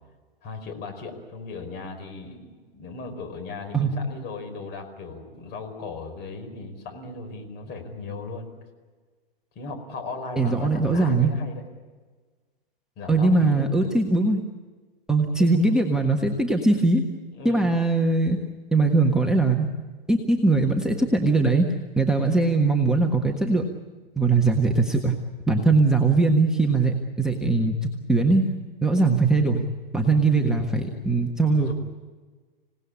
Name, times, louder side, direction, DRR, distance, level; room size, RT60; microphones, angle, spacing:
voice 1, 0.4-8.5 9.5-11.6 13.0-13.7 15.3-15.6 17.3-17.7 31.6-31.7, left 3 dB, 35° left, 5 dB, 5.0 m, -37 dB
voice 2, 10.4-11.3 13.1-14.4 15.1-17.1 17.4-18.4 18.7-19.7 20.1-21.7 22.0-23.7 24.2-25.1 25.5-28.5 28.8-29.6 29.9-31.7, right 3 dB, ahead, 1 dB, 1.5 m, -21 dB
26.5 x 18.0 x 8.6 m, 1.4 s
figure-of-eight pair, 110°, 29 cm